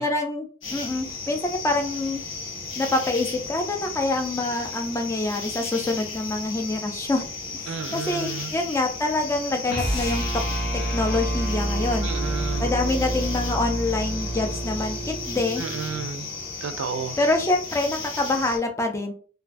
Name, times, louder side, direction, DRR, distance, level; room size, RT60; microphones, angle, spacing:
voice 1, 0.0-2.2 2.8-7.2 7.5-10.3 10.9-12.1 12.6-15.6 17.2-19.1, left 2 dB, 15° left, 0.4 m, -26 dB
sound 1, 0.6-18.6, left 4 dB, 80° left, 0.9 m, -35 dB
voice 2, 7.7-8.5 12.0-12.7 15.6-16.3 16.6-17.2, right 6 dB, 70° right, 0.3 m, -32 dB
sound 2, 9.7-16.1, right 1 dB, 55° left, 0.6 m, -28 dB
2.4 x 2.2 x 2.4 m
head